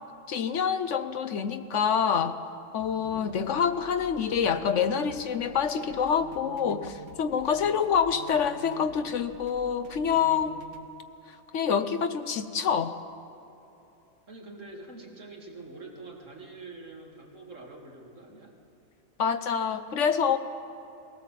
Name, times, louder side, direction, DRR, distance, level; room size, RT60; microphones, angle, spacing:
voice 1, 0.3-2.4 2.7-10.5 11.5-13.0 19.2-20.4, left 7 dB, 65° left, 10 dB, 1.0 m, -26 dB
sound 1, 2.8-10.9, right 5 dB, 90° right, 1.7 m, -50 dB
voice 2, 2.9-3.4 7.5-7.8 14.3-18.6, right 2 dB, 60° right, -1 dB, 2.8 m, -46 dB
21.0 x 18.0 x 7.4 m, 2.9 s
omnidirectional pair, 1.5 m